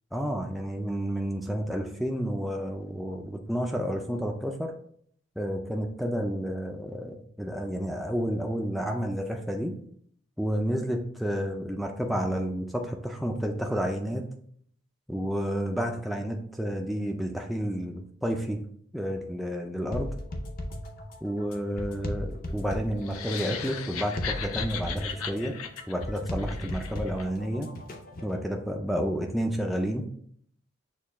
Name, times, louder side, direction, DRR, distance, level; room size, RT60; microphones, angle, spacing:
voice 1, 0.1-4.7 5.4-9.7 10.4-14.3 15.1-18.6 18.9-20.1 21.2-25.5 25.9-27.7 28.2-30.0, equal, ahead, 1 dB, 0.3 m, -30 dB
sound 1, 19.9-28.4, left 1 dB, 40° left, 0.6 m, -37 dB
sound 2, 23.0-27.3, left 7 dB, 85° left, 0.5 m, -37 dB
6.5 x 2.3 x 3.4 m, 0.62 s
head